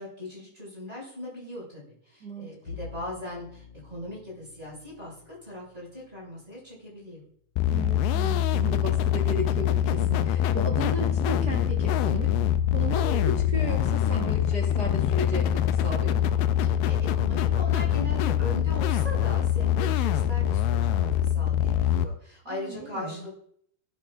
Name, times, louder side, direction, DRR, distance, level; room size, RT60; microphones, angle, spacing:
voice 1, 0.0-7.2 16.6-23.4, left 1 dB, 10° right, -5 dB, 6.2 m, -39 dB
Bowed string instrument, 2.6-7.7, left 4 dB, 40° left, 4.2 m, -48 dB
sound 1, 7.6-22.1, left 10 dB, 90° left, 2.6 m, -24 dB
voice 2, 7.7-12.4 12.7-16.4 22.5-23.2, right 2 dB, 85° right, -2 dB, 0.8 m, -35 dB
16.0 x 13.0 x 2.5 m, 0.66 s
omnidirectional pair, 4.4 m